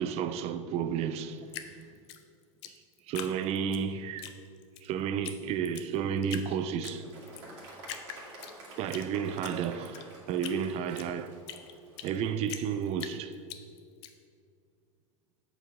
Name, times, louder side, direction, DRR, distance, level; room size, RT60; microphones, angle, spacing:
voice 1, 0.0-1.5 2.7-2.8 3.1-4.3 4.8-7.1 8.8-11.4 12.0-13.3, right 7 dB, 40° right, 0.5 m, -32 dB
Drip, 1.5-3.8 4.2-4.9 5.2-5.4 5.6-6.5 6.8-7.5 7.8-9.0 9.4-12.2 12.5-14.1, left 10 dB, 55° left, 0.6 m, -42 dB
Applause, 6.8-12.3, right 1 dB, 55° right, 2.0 m, -49 dB
7.8 x 4.5 x 5.5 m
figure-of-eight pair, 85°, 17 cm